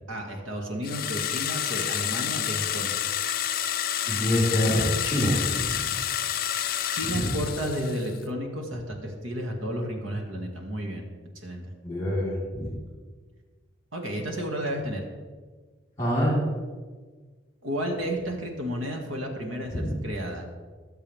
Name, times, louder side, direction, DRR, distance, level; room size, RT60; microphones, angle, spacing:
voice 1, 0.1-2.9 6.9-11.0 11.4-11.7 13.9-15.0 17.6-20.5, equal, 90° right, 2 dB, 2.1 m, -32 dB
sound 1, 0.8-8.2, left 10 dB, 45° left, 0.5 m, -29 dB
voice 2, 4.1-5.8 7.0-7.3 11.8-12.7 16.0-16.3 19.7-20.0, equal, 15° left, -4 dB, 4.1 m, -26 dB
22.5 x 7.5 x 3.6 m, 1.4 s
head